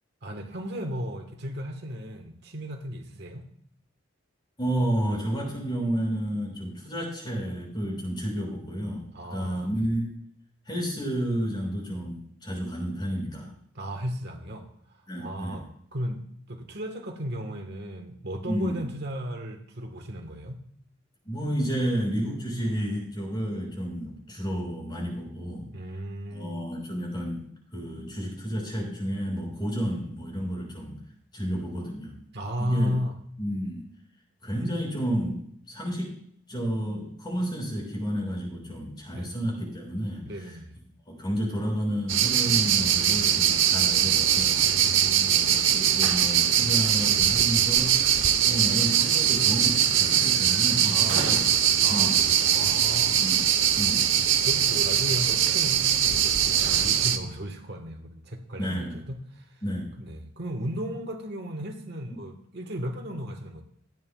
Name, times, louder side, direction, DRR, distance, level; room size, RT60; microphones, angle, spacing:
voice 1, 0.2-3.5 9.1-9.9 13.7-20.6 25.7-26.7 32.3-33.2 39.1-39.3 40.2-40.8 44.6-45.6 50.9-51.5 51.8-53.2 54.0-59.6 60.0-63.6, equal, 60° right, 4 dB, 1.4 m, -35 dB
voice 2, 4.6-9.0 9.3-10.1 10.7-13.5 15.1-15.6 18.5-18.9 21.3-25.7 26.3-27.5 27.7-31.0 31.3-32.2 32.6-33.0 33.4-33.8 34.4-36.2 36.5-40.3 41.1-44.6 45.3-48.1 48.4-51.4 51.9-52.1 53.2-53.4 53.8-54.0 58.6-59.0 59.6-59.9, equal, 25° left, -3 dB, 5.9 m, -31 dB
sound 1, 42.1-57.2, right 9 dB, 80° right, 0.9 m, -22 dB
27.0 x 9.1 x 2.4 m, 0.66 s
head